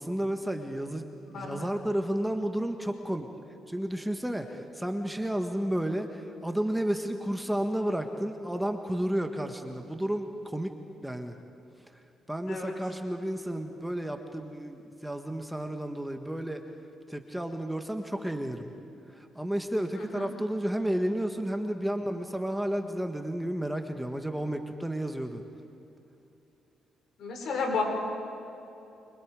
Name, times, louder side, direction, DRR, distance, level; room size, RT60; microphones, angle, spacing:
voice 1, 0.0-3.3 3.7-10.7 11.0-11.3 12.3-16.6 17.1-18.7 19.1-25.4, right 1 dB, 5° right, 5 dB, 1.5 m, -32 dB
voice 2, 1.3-1.7 12.5-12.7 20.1-20.3 27.2-27.8, left 4 dB, 70° left, 1 dB, 5.5 m, -32 dB
29.0 x 25.0 x 4.9 m, 2.8 s
cardioid pair, 90°, 0 cm